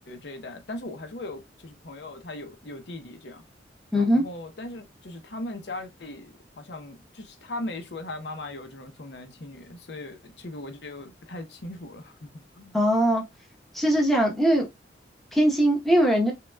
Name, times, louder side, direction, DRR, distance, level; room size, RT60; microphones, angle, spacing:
voice 1, 0.0-3.4 3.9-12.7, left 2 dB, 70° left, 0.7 m, -39 dB
voice 2, 3.9-4.2 12.7-13.2 13.7-14.7 15.3-16.3, equal, ahead, 0.9 m, -21 dB
5.6 x 2.3 x 2.2 m
head